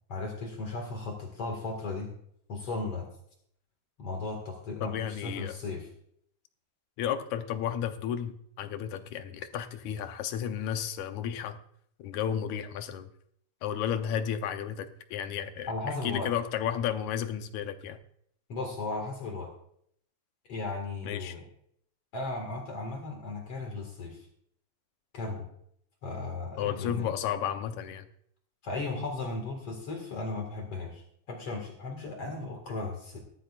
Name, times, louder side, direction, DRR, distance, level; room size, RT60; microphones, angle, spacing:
voice 1, 0.1-2.1 2.5-3.1 4.0-5.9 15.7-16.3 18.5-19.5 20.5-21.4 22.1-24.2 25.1-25.5 26.0-27.1 28.6-33.2, left 3 dB, 55° left, 2 dB, 2.7 m, -36 dB
voice 2, 4.8-5.5 7.0-11.6 12.0-13.1 13.6-18.0 21.0-21.3 26.6-28.1, left 9 dB, 80° left, 8 dB, 2.2 m, -33 dB
18.5 x 12.0 x 2.5 m, 0.68 s
omnidirectional pair, 3.4 m